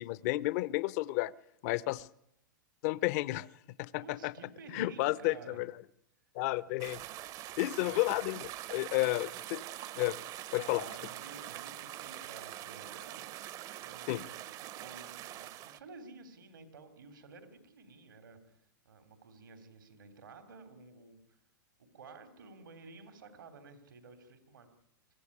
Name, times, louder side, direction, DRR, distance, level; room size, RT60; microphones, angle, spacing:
voice 1, 0.0-1.3 1.6-2.1 2.8-3.5 3.8-4.3 4.7-5.7 6.3-7.0 7.6-9.6 9.9-10.2 10.5-10.8 14.1-14.2, left 18 dB, 50° left, 19 dB, 0.8 m, -32 dB
voice 2, 3.9-5.6 7.8-8.0 8.9-9.2 10.6-13.4 13.7-21.4 21.8-24.7, right 4 dB, 85° right, 9 dB, 3.4 m, -53 dB
sound 1, 6.8-15.8, right 13 dB, 35° right, 0.8 m, -44 dB
23.5 x 14.5 x 9.8 m, 0.76 s
hypercardioid pair, 130°, 11 cm